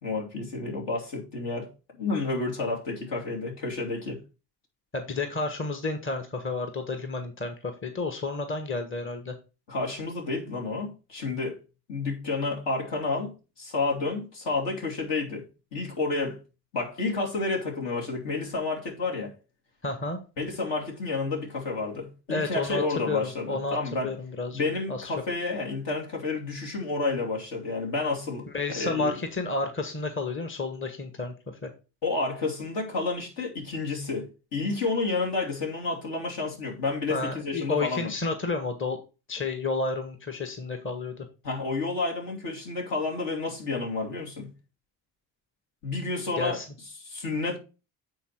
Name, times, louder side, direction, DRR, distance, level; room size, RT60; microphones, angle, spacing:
voice 1, 0.0-1.7 2.0-4.2 9.7-11.6 11.9-13.3 13.6-15.4 15.7-16.4 16.7-19.3 20.4-24.1 24.5-29.1 32.0-38.1 41.4-44.5 45.8-46.6 47.0-47.6, left 3 dB, 60° left, 2.7 m, -30 dB
voice 2, 4.9-9.3 19.8-20.2 22.3-24.6 24.9-25.1 28.5-31.3 31.6-31.7 37.1-39.0 39.3-41.2 46.4-46.7, left 3 dB, 25° left, 1.4 m, -31 dB
9.0 x 3.9 x 4.6 m
hypercardioid pair, 50°, 47 cm